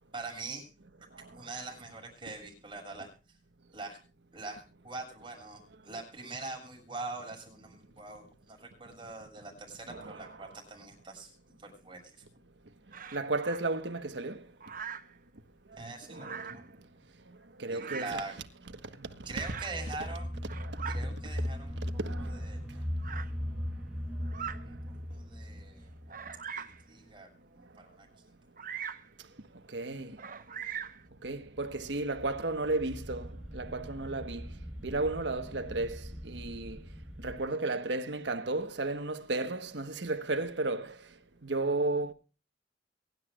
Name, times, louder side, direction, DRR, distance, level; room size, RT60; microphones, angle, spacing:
voice 1, 0.1-0.7 1.0-3.4 3.7-4.0 4.3-12.2 15.7-16.7 17.7-18.4 19.2-20.3 20.9-22.9 24.6-25.9 26.6-28.3, right 3 dB, 30° right, 7.1 m, -43 dB
Bird vocalization bird call bird song, 12.9-13.6 14.6-15.1 16.1-16.7 17.7-18.3 19.4-19.8 20.3-21.0 21.9-22.0 23.0-23.3 24.2-24.6 25.2-25.3 26.1-26.8 28.6-29.1 30.2-31.0, right 7 dB, 50° right, 1.1 m, -41 dB
voice 2, 13.1-14.4 16.1-16.6 17.6-18.2 20.6-20.7 22.0-22.3 29.7-30.1 31.2-33.3 33.5-34.5 34.8-36.8 37.2-40.9 41.4-42.1, right 2 dB, 90° right, 1.4 m, -33 dB
sound 1, 19.4-27.1 30.9-37.4, equal, 5° right, 1.5 m, -39 dB
23.0 x 12.0 x 2.5 m
head